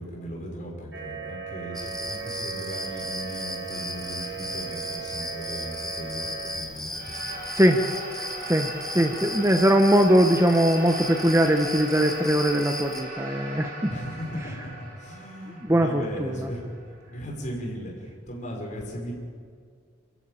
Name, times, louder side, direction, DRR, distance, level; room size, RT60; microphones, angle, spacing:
voice 1, 0.0-7.4 13.9-19.1, equal, 35° left, -1 dB, 5.9 m, -37 dB
sound 1, 0.9-6.6, right 6 dB, 65° right, 3.7 m, -37 dB
sound 2, 1.7-13.0, left 1 dB, ahead, 2.1 m, -36 dB
sound 3, 6.8-17.4, right 2 dB, 45° right, 5.4 m, -39 dB
voice 2, 8.5-13.9 15.7-16.4, equal, 15° right, 4 dB, 1.0 m, -21 dB
27.5 x 14.5 x 8.9 m, 2.1 s
head